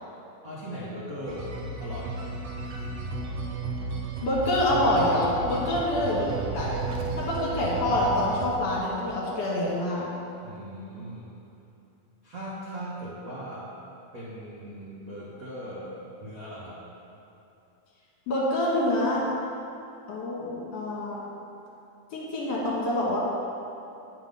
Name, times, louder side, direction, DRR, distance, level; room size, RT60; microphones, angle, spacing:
voice 1, 0.4-1.5 1.8-2.2 2.6-3.0 5.6-5.8 10.4-11.4 12.2-13.7 14.1-16.8, equal, 50° right, -9 dB, 1.1 m, -39 dB
sound 1, 1.3-8.5, right 3 dB, 70° right, 1.8 m, -34 dB
voice 2, 4.2-6.8 7.2-10.1 18.3-19.2 20.1-21.2 22.1-23.2, left 1 dB, 55° left, -5 dB, 2.4 m, -26 dB
Fire, 6.2-8.7, right 3 dB, 85° right, 1.5 m, -39 dB
9.5 x 5.7 x 5.5 m, 2.8 s
omnidirectional pair, 3.6 m